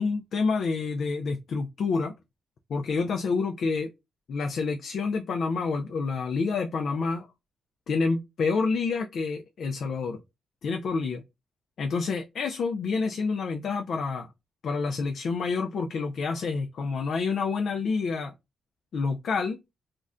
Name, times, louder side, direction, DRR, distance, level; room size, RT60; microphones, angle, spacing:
voice 1, 0.0-2.1 2.7-3.9 4.3-7.3 7.9-10.2 10.6-11.2 11.8-14.3 14.6-18.3 18.9-19.6, left 4 dB, 60° left, 0.3 m, -28 dB
2.5 x 2.1 x 3.4 m
cardioid pair, 125°, 0 cm